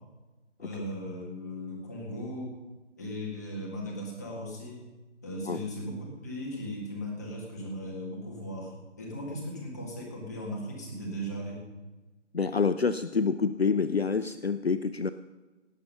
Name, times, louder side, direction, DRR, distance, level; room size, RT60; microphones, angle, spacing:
voice 1, 0.6-2.5 3.0-4.8 5.2-8.7 9.0-11.6, equal, 15° left, -1 dB, 1.8 m, -37 dB
voice 2, 12.3-15.1, left 5 dB, 55° left, 12 dB, 0.5 m, -27 dB
18.0 x 7.4 x 5.5 m, 1.2 s
figure-of-eight pair, 165°, 36 cm